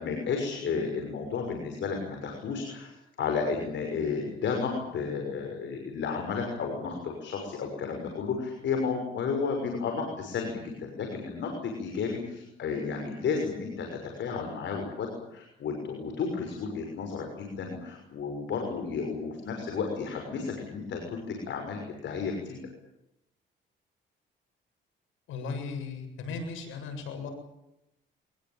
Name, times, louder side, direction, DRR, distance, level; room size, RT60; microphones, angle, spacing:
voice 1, 0.0-2.9 3.2-22.6, left 5 dB, 70° left, 3 dB, 6.2 m, -32 dB
voice 2, 25.3-27.3, left 4 dB, 85° left, 5 dB, 7.5 m, -36 dB
23.5 x 21.0 x 9.1 m, 0.87 s
cardioid pair, 90°, 20 cm